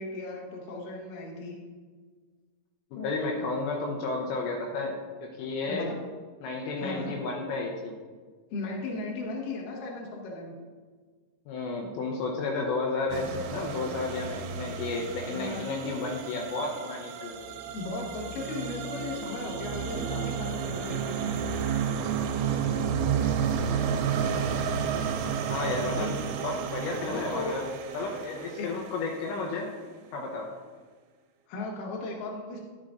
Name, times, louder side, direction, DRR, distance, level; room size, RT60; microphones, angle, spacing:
voice 1, 0.0-1.5 5.7-6.0 6.8-7.1 8.5-10.5 15.3-15.6 17.7-21.3 25.6-26.2 27.0-27.5 28.6-28.7 31.5-32.6, left 3 dB, 65° left, -2 dB, 2.3 m, -36 dB
voice 2, 2.9-5.9 6.4-7.9 11.5-17.6 25.5-26.1 26.4-27.7 27.9-29.7 30.1-30.5, left 3 dB, 80° left, 0 dB, 2.8 m, -32 dB
sound 1, 13.1-29.2, right 7 dB, 85° right, 3.0 m, -31 dB
12.5 x 6.3 x 2.5 m, 1.5 s
omnidirectional pair, 5.4 m